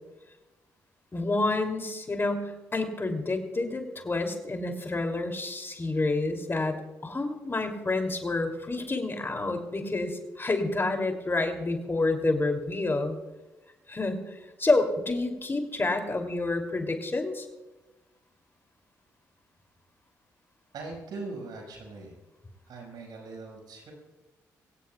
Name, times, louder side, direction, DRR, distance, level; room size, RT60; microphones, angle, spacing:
voice 1, 1.1-6.8 7.0-13.2 13.9-14.2 14.6-17.5, left 2 dB, 30° left, 5 dB, 2.7 m, -28 dB
voice 2, 20.7-22.2 22.7-23.9, right 3 dB, 70° right, 1 dB, 5.1 m, -41 dB
24.0 x 16.5 x 2.3 m, 1.1 s
supercardioid pair, 50°, 7 cm